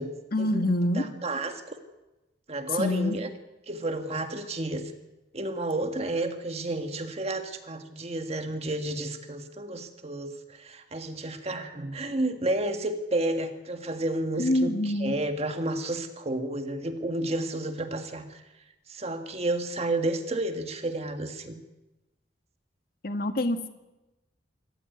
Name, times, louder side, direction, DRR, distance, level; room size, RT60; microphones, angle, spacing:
voice 1, 0.3-1.0 2.7-3.2 14.4-15.2 23.0-23.7, left 1 dB, 50° left, 7 dB, 1.7 m, -26 dB
voice 2, 1.0-1.7 2.5-3.3 3.7-4.9 5.3-18.4 18.9-21.6, right 2 dB, 35° right, 7 dB, 1.7 m, -31 dB
25.5 x 14.0 x 9.5 m, 1.0 s
head